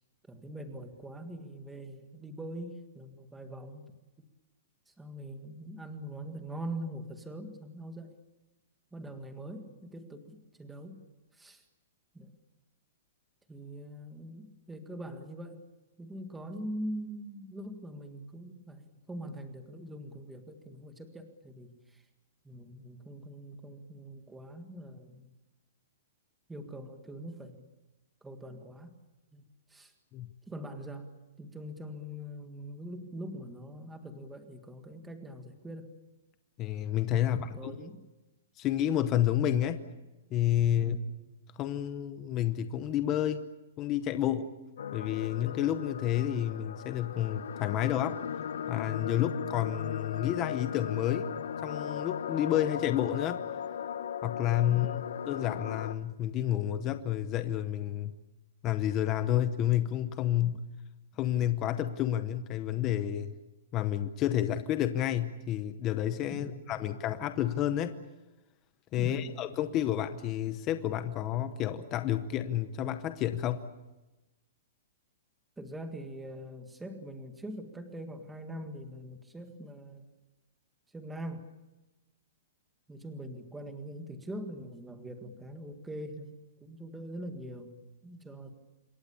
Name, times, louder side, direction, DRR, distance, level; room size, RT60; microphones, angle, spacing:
voice 1, 0.3-3.8 4.9-8.1 8.9-11.0 11.3-11.6 12.1-12.3 13.5-15.6 16.0-22.0 22.4-25.3 26.5-27.7 28.2-28.9 29.3-29.9 30.5-31.1 31.4-35.9 37.2-38.0 40.8-41.1 54.7-55.1 60.4-60.6 66.3-67.0 69.0-69.4 75.6-80.1 80.9-81.5 82.9-87.8 88.0-88.5, right 1 dB, 5° right, 6 dB, 1.8 m, -43 dB
voice 2, 36.6-37.7 38.6-39.8 40.3-41.0 41.6-43.5 43.8-44.5 44.9-48.2 48.7-51.3 51.6-53.4 54.2-55.0 55.2-58.1 58.6-60.6 61.2-63.3 63.7-68.0 68.9-73.7, left 11 dB, 20° left, 10 dB, 0.8 m, -30 dB
sound 1, 44.8-55.9, left 8 dB, 75° left, 1.1 m, -37 dB
27.0 x 23.0 x 7.1 m, 1.0 s
hypercardioid pair, 180°, 0 cm